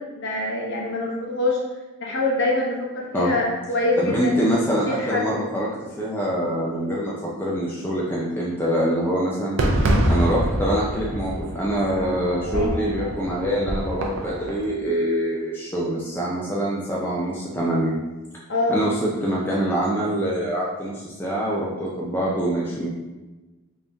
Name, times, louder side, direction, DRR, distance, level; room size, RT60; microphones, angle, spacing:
voice 1, 0.0-1.6 2.0-4.4 4.9-5.3 12.4-12.8 18.5-18.8, left 2 dB, 55° left, -3 dB, 0.8 m, -25 dB
voice 2, 4.0-5.7 6.0-7.1 7.4-9.6 10.1-18.0 18.7-22.9, equal, 10° left, -6 dB, 0.4 m, -24 dB
Fireworks, 9.6-14.6, right 1 dB, 60° right, 0.5 m, -25 dB
3.5 x 2.7 x 3.4 m, 1.2 s
head